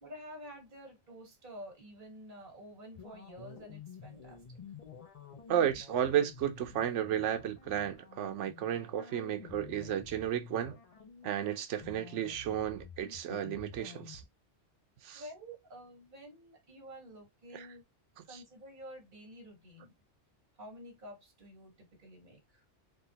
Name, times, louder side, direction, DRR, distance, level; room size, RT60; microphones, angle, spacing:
voice 1, 0.0-4.6 15.1-17.8 18.2-19.9 20.6-22.6, equal, 40° right, 1.5 m, -50 dB
Computer Malfunction, 2.9-14.2, left 6 dB, 40° left, 0.7 m, -50 dB
voice 2, 5.5-10.8 11.2-14.2 15.0-15.2 17.5-17.6 18.2-18.3, right 10 dB, 80° right, 1.0 m, -33 dB
3.6 x 2.4 x 2.7 m
omnidirectional pair, 1.2 m